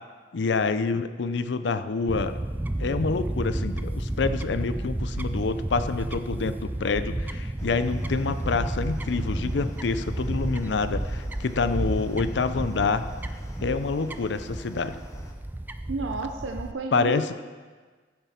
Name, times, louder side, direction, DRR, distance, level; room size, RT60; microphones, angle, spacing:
voice 1, 0.3-2.4 2.8-13.0 13.6-15.0 16.9-17.3, left 4 dB, 65° left, 12 dB, 0.5 m, -27 dB
Fowl / Bird, 2.1-16.7, right 1 dB, 10° right, 0.3 m, -31 dB
sound 1, 7.6-15.3, equal, 15° left, 0.9 m, -45 dB
voice 2, 15.9-17.3, right 3 dB, 90° right, 3 dB, 0.7 m, -32 dB
15.0 x 7.0 x 4.3 m, 1.5 s
head